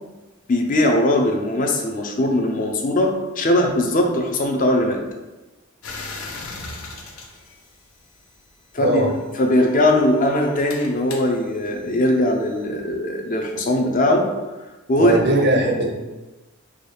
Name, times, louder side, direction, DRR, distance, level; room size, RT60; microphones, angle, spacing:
voice 1, 0.5-5.0 8.7-9.1 9.4-14.3 14.9-15.3, left 1 dB, 40° left, 2 dB, 0.5 m, -20 dB
sound 1, 5.8-8.5 9.4-12.6, left 3 dB, 85° left, 0.7 m, -38 dB
voice 2, 8.8-9.1 15.0-15.9, right 1 dB, 50° right, 3 dB, 0.6 m, -19 dB
4.7 x 2.3 x 3.2 m, 1.1 s
head